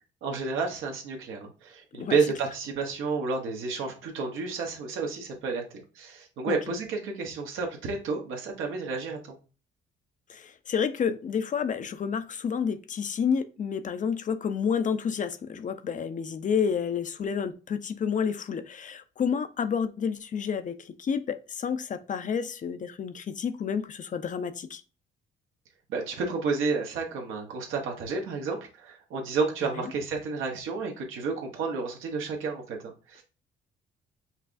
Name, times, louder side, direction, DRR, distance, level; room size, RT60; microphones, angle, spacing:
voice 1, 0.2-5.6 5.9-9.4 25.9-33.2, right 4 dB, 85° right, 1.0 m, -31 dB
voice 2, 10.3-24.8, left 7 dB, 40° left, 0.4 m, -30 dB
5.5 x 2.3 x 2.5 m
cardioid pair, 90°, 20 cm